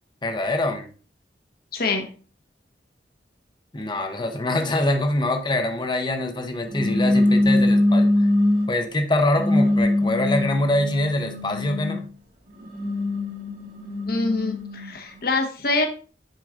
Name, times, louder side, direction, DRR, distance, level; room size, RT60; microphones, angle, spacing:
voice 1, 0.2-0.9 3.7-8.3 8.7-12.1, left 1 dB, 25° left, 5 dB, 0.9 m, -24 dB
voice 2, 1.7-2.1 14.1-15.9, left 3 dB, 60° left, 4 dB, 1.3 m, -25 dB
sound 1, 6.7-8.7 9.3-12.0 12.6-14.9, left 1 dB, 55° right, 1.7 m, -22 dB
9.2 x 4.8 x 2.5 m, 0.38 s
head